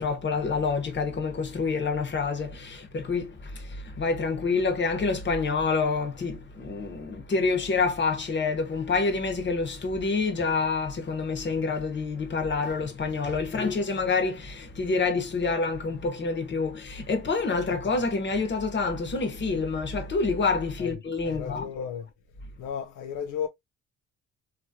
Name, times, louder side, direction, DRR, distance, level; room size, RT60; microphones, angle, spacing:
voice 1, 0.0-21.7, left 4 dB, 40° left, 1.0 m, -27 dB
voice 2, 21.2-22.1 22.6-23.5, left 8 dB, 85° left, 0.5 m, -34 dB
2.9 x 2.5 x 2.7 m
cardioid pair, 90°, 30 cm